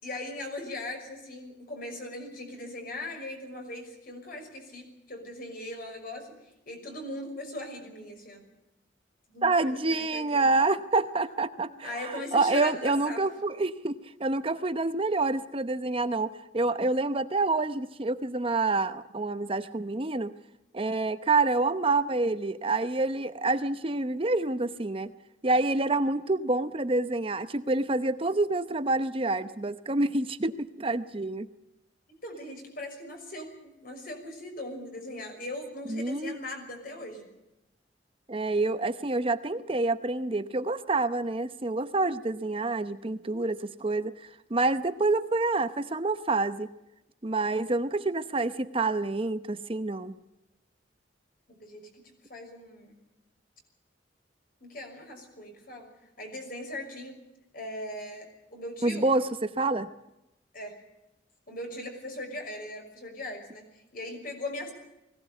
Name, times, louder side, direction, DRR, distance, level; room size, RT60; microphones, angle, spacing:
voice 1, 0.0-6.3 6.7-8.4 9.3-10.5 11.6-13.2 32.1-37.3 51.5-53.0 54.6-55.9 56.2-57.2 57.5-59.1 60.5-60.7 61.5-63.6 63.9-64.7, left 1 dB, 50° left, 3 dB, 6.0 m, -39 dB
voice 2, 9.4-20.3 20.7-25.1 25.4-31.5 35.9-36.4 38.3-46.7 47.2-50.1 58.8-59.9, right 3 dB, 30° right, 11 dB, 0.8 m, -27 dB
21.0 x 17.5 x 8.2 m, 0.91 s
head